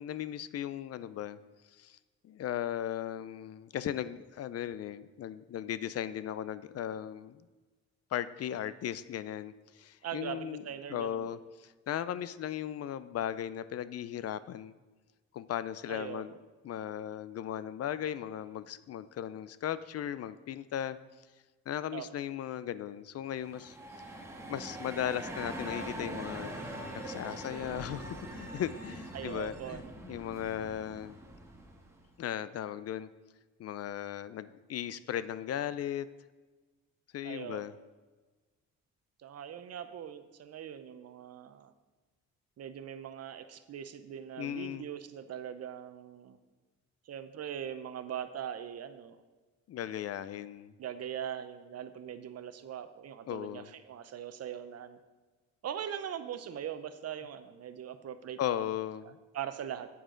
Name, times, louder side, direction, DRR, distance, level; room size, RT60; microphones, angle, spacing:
voice 1, 0.0-1.4 1.8-2.0 2.2-7.5 8.1-10.6 10.9-14.7 15.3-16.3 16.6-21.0 21.7-23.8 24.5-26.5 26.9-31.2 32.2-33.1 33.6-36.1 37.1-37.7 44.4-44.9 49.7-50.7 53.3-53.7 58.4-59.2, left 10 dB, 55° left, 15 dB, 0.5 m, -37 dB
voice 2, 10.0-11.2 15.9-16.2 21.9-22.1 29.1-29.9 37.2-37.6 39.2-41.7 42.6-46.4 47.1-49.2 50.8-55.0 55.6-58.7 59.0-59.9, right 9 dB, 55° right, 11 dB, 0.8 m, -41 dB
sound 1, 23.3-32.1, right 1 dB, 10° right, 1.5 m, -43 dB
8.9 x 8.6 x 3.8 m, 1.3 s
cardioid pair, 90°, 30 cm